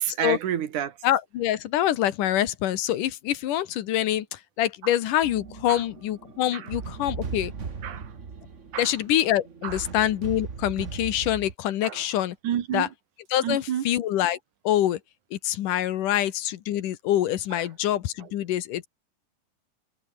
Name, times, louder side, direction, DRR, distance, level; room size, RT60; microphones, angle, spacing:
voice 1, 0.0-1.0 5.7-5.8 6.5-6.7 7.8-8.1 8.7-9.0 9.6-9.9 11.8-12.0 12.4-12.9 13.4-13.9 17.5-17.7 18.2-18.3, right 10 dB, 65° right, 3.1 m, -30 dB
voice 2, 1.0-7.5 8.8-12.4 12.7-12.9 13.3-14.4 14.6-15.0 15.3-18.9, left 12 dB, 75° left, 2.8 m, -25 dB
sound 1, 5.2-11.5, right 5 dB, 40° right, 1.1 m, -38 dB
omnidirectional pair, 3.8 m